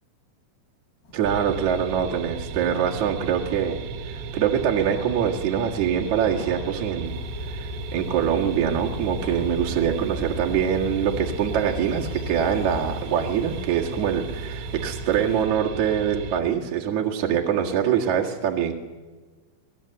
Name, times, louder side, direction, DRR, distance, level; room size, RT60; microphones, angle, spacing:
sound 1, 1.0-15.4, left 1 dB, 55° left, 8.8 m, -44 dB
voice 1, 1.1-7.2 7.5-18.7, right 8 dB, 55° right, -1 dB, 2.3 m, -24 dB
sound 2, 1.3-16.4, right 5 dB, 80° right, 3.8 m, -35 dB
sound 3, 7.0-13.1, left 6 dB, 85° left, 4.0 m, -38 dB
25.0 x 19.5 x 7.9 m, 1.4 s
omnidirectional pair, 5.7 m